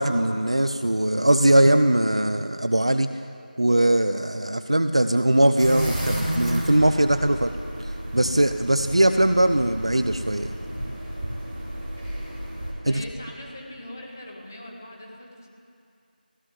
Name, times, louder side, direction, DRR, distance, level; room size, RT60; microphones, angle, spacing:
voice 1, 0.0-3.1 3.6-7.5 7.8-10.5 12.9-13.0, right 1 dB, 35° right, 10 dB, 0.7 m, -21 dB
sound 1, 5.6-12.7, equal, 10° right, 2.9 m, -31 dB
voice 2, 12.8-15.5, left 1 dB, 20° left, 0 dB, 2.0 m, -41 dB
19.0 x 17.0 x 9.6 m, 2.6 s
figure-of-eight pair, 175°, 5 cm